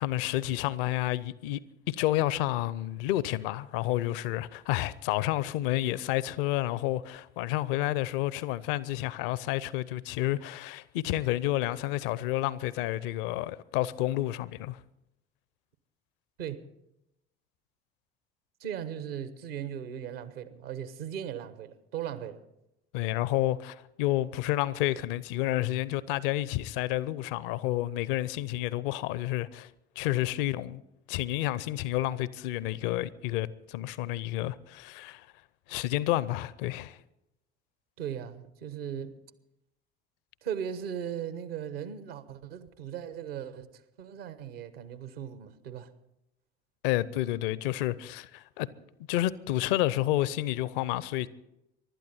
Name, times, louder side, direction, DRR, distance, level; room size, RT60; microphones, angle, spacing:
voice 1, 0.0-1.6 1.9-14.8 22.9-29.7 30.0-30.8 31.1-35.3 35.7-37.0 46.8-48.7 49.1-51.3, left 15 dB, 60° left, 0.7 m, -30 dB
voice 2, 18.6-22.4 38.0-39.2 40.4-45.9, right 9 dB, 70° right, 1.2 m, -38 dB
24.5 x 12.0 x 4.3 m
figure-of-eight pair, 55°, 31 cm